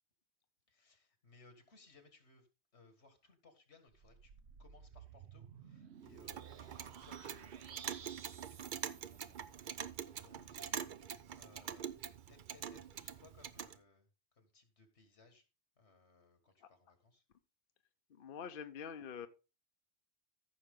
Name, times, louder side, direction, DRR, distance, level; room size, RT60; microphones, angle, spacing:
voice 1, 0.7-2.5 2.7-4.3 4.6-11.1 11.4-11.9 12.3-15.4 15.8-17.2, left 3 dB, 85° left, 7 dB, 2.2 m, -65 dB
sound 1, 3.9-9.7, right 7 dB, 75° right, 1.0 m, -56 dB
Clock, 6.0-13.8, right 8 dB, 55° right, 0.7 m, -45 dB
voice 2, 18.2-19.3, left 7 dB, 60° left, 9 dB, 0.8 m, -45 dB
14.5 x 6.3 x 3.7 m, 0.30 s
omnidirectional pair, 1.1 m